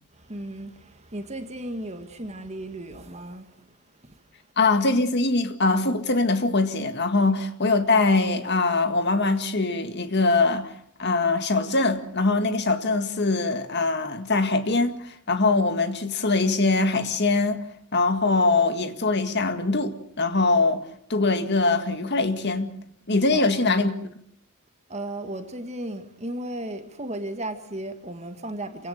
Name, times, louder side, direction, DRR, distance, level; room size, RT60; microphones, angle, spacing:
voice 1, 0.1-4.2 23.3-23.6 24.9-28.9, right 1 dB, 30° right, 1.9 m, -35 dB
voice 2, 4.6-10.7 11.0-17.6 17.9-22.7 23.1-23.9, left 3 dB, 50° left, 2.0 m, -22 dB
28.0 x 17.5 x 6.6 m
head